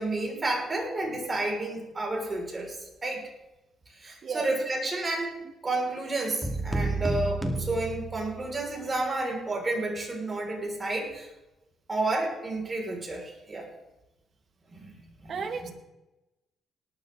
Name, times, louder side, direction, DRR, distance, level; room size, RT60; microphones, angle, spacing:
voice 1, 0.0-3.2 3.9-5.3 5.6-11.3 11.9-13.7 14.7-15.4 15.6-15.7, right 2 dB, 30° right, 0 dB, 5.8 m, -31 dB
sound 1, 6.4-8.7, right 2 dB, 5° right, 2.5 m, -31 dB
voice 2, 15.3-15.7, right 5 dB, 55° right, 6 dB, 2.1 m, -33 dB
18.5 x 12.5 x 4.0 m, 0.99 s
cardioid pair, 90°, 0 cm